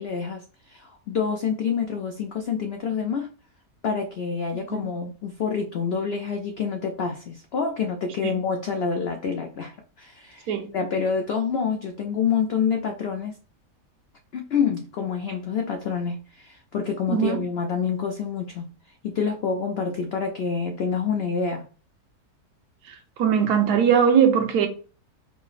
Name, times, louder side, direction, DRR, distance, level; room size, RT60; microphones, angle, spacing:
voice 1, 0.0-3.3 3.8-13.3 14.3-18.7 19.0-21.7, left 6 dB, 85° left, 0.5 m, -27 dB
voice 2, 23.2-24.7, right 8 dB, 75° right, 1.3 m, -20 dB
4.7 x 2.0 x 3.9 m
omnidirectional pair, 1.7 m